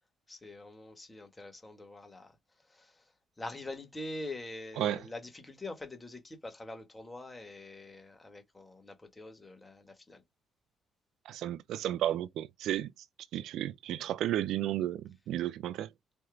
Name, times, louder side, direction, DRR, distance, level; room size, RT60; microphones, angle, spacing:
voice 1, 0.3-10.2, left 2 dB, 20° left, 2.0 m, -45 dB
voice 2, 11.3-12.9 13.3-15.9, right 12 dB, 85° right, 0.4 m, -33 dB
4.4 x 2.9 x 3.6 m
cardioid pair, 90°, 0 cm